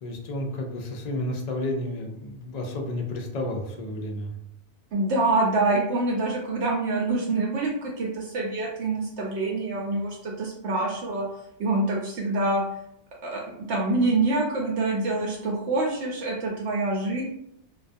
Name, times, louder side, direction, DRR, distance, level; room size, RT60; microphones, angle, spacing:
voice 1, 0.0-4.3, left 1 dB, 65° left, 2 dB, 0.4 m, -31 dB
voice 2, 4.9-11.3 11.6-12.6 13.2-13.4 13.7-17.2, right 2 dB, 70° right, -2 dB, 0.8 m, -26 dB
2.3 x 2.2 x 2.5 m, 0.75 s
omnidirectional pair, 1.2 m